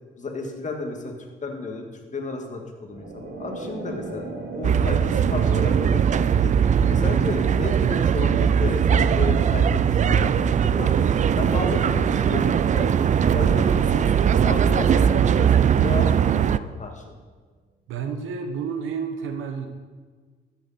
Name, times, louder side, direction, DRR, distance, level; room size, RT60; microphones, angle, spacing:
voice 1, 0.2-1.1 1.4-6.1 6.4-6.5 6.9-11.1 11.4-12.9 13.3-17.2, left 3 dB, 40° left, 2 dB, 2.0 m, -33 dB
sound 1, 2.8-16.0, right 3 dB, 60° right, 2.1 m, -37 dB
sound 2, 4.6-16.6, right 8 dB, 40° right, 0.4 m, -20 dB
voice 2, 17.9-19.7, right 6 dB, 80° right, 6 dB, 1.2 m, -30 dB
13.0 x 8.4 x 4.2 m, 1.5 s
cardioid pair, 90°, 20 cm